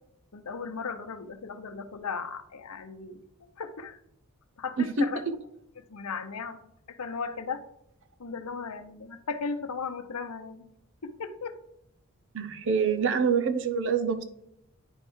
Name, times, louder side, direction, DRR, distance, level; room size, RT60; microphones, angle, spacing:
voice 1, 0.3-3.2 3.6-4.0 4.6-5.2 5.8-6.6 6.9-7.6 8.2-10.6 11.0-11.6, left 5 dB, 85° left, 9 dB, 0.7 m, -36 dB
voice 2, 12.3-14.2, right 6 dB, 60° right, 7 dB, 0.6 m, -26 dB
9.7 x 3.3 x 4.6 m, 0.77 s
head